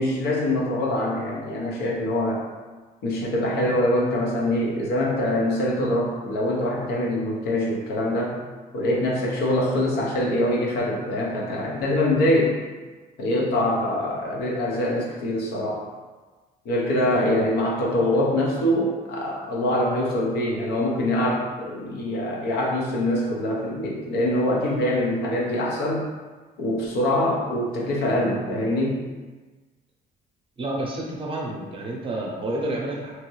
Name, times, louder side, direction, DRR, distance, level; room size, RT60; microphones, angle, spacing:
voice 1, 0.0-2.4 3.0-8.4 8.7-12.6 13.2-15.8 16.6-26.0 26.6-29.0, left 1 dB, 75° left, -3 dB, 0.8 m, -24 dB
voice 2, 30.6-33.1, right 1 dB, 30° right, -2 dB, 0.7 m, -29 dB
3.0 x 2.6 x 3.1 m, 1.3 s
cardioid pair, 110°, 17 cm